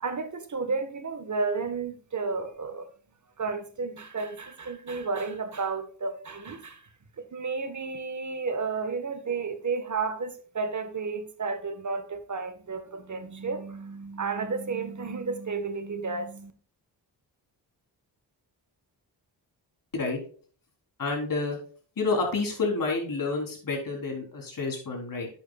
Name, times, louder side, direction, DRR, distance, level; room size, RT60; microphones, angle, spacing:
voice 1, 0.0-2.9 3.4-6.8 7.2-16.5, right 4 dB, 45° right, 1.5 m, -32 dB
voice 2, 21.0-21.6 22.0-25.3, left 3 dB, 50° left, 4.0 m, -29 dB
11.0 x 8.5 x 2.4 m
cardioid pair, 90°, 42 cm